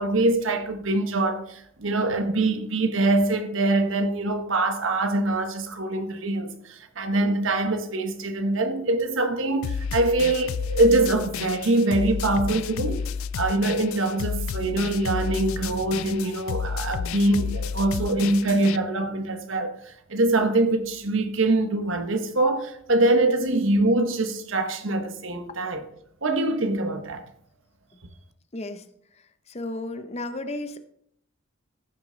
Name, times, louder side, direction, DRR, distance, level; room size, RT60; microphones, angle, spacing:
voice 1, 0.0-13.0 13.4-25.8 26.2-27.3, right 2 dB, 65° right, 1.1 m, -24 dB
sound 1, 9.6-18.8, left 6 dB, 75° left, 0.3 m, -31 dB
voice 2, 28.5-28.8 29.5-30.8, left 2 dB, 30° left, 0.6 m, -33 dB
15.0 x 6.5 x 3.9 m
head